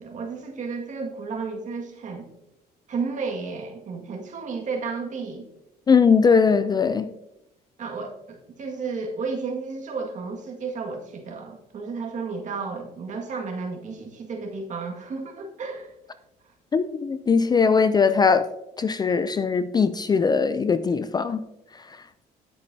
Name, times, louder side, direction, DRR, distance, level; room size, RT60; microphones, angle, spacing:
voice 1, 0.0-2.3 2.9-5.5 7.8-15.9, right 4 dB, 45° right, 1.9 m, -32 dB
voice 2, 5.9-7.1 16.7-18.5 18.8-21.4, left 5 dB, 25° left, 0.4 m, -20 dB
9.9 x 8.3 x 2.7 m
cardioid pair, 110°, 17 cm